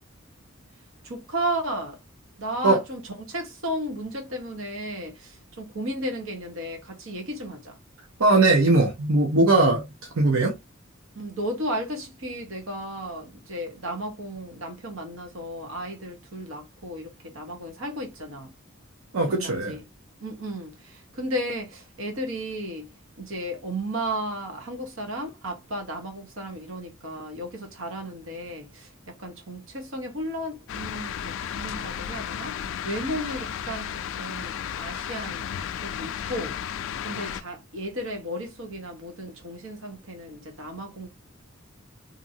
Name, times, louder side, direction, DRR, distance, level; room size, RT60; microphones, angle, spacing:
voice 1, 1.0-2.0 2.4-7.8 11.1-18.5 19.3-19.8 20.2-22.9 23.2-32.6 32.8-35.5 35.8-36.6 37.0-41.1, right 1 dB, 70° right, 1.1 m, -34 dB
voice 2, 8.2-10.5 19.1-19.8, right 2 dB, 85° right, 0.7 m, -20 dB
sound 1, 30.7-37.4, left 9 dB, 65° left, 0.3 m, -33 dB
2.8 x 2.6 x 2.7 m
head